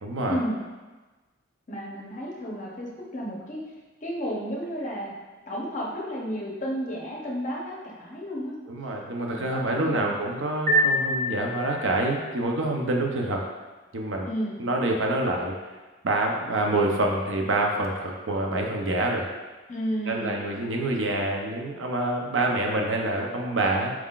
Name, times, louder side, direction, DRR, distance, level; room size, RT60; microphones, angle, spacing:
voice 1, 0.0-0.4 8.7-13.4 13.9-14.3 14.6-15.5 16.0-19.3 20.1-23.9, right 2 dB, 75° right, 1 dB, 0.6 m, -26 dB
voice 2, 1.7-3.7 4.0-5.1 5.5-8.6 9.4-10.1 14.3-14.5 19.7-20.3, equal, 40° left, -3 dB, 0.7 m, -32 dB
sound 1, 10.7-12.1, equal, 40° right, 0.8 m, -25 dB
4.5 x 3.8 x 2.4 m, 1.2 s
head